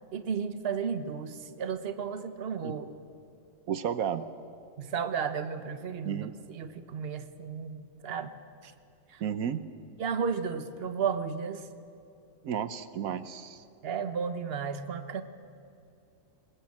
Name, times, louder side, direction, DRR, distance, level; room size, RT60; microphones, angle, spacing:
voice 1, 0.1-2.9 4.8-8.3 8.6-8.7 9.1-9.2 10.0-11.7 13.8-15.2, right 6 dB, 45° right, 10 dB, 1.3 m, -33 dB
voice 2, 3.7-4.2 6.0-6.3 9.2-9.6 12.4-13.6, right 8 dB, 80° right, 13 dB, 1.3 m, -32 dB
23.5 x 20.5 x 8.6 m, 2.7 s
omnidirectional pair, 1.5 m